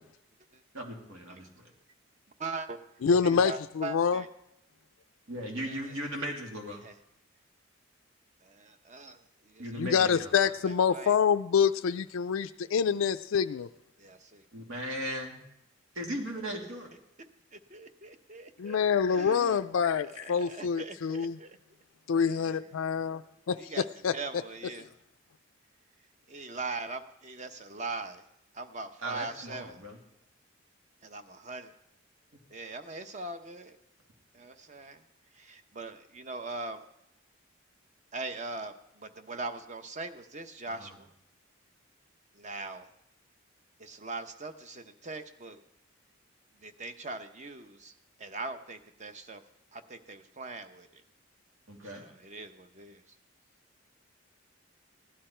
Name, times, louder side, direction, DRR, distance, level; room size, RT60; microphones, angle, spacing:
voice 1, 0.7-1.6 5.3-6.8 9.6-10.4 14.5-15.4 15.9-16.9 29.0-30.0 40.7-40.9 51.7-52.1, equal, 85° right, 1 dB, 2.6 m, -37 dB
voice 2, 2.4-2.8 3.4-4.3 5.7-5.9 6.8-6.9 8.4-11.1 14.0-14.4 17.5-18.8 19.1-19.6 19.9-21.6 22.2-22.6 23.6-23.8 24.1-24.9 26.3-28.2 28.5-29.8 31.0-31.7 32.5-33.8 34.3-35.0 35.3-36.8 38.1-41.1 42.3-42.9 43.8-45.6 46.6-47.9 48.2-49.4 49.7-51.0 51.9-53.0, right 3 dB, 35° right, 9 dB, 0.8 m, -41 dB
voice 3, 3.0-4.2 9.7-13.7 18.6-21.4 22.1-23.2 23.5-24.1, left 6 dB, 80° left, 10 dB, 0.4 m, -26 dB
16.0 x 11.0 x 4.4 m, 0.82 s
head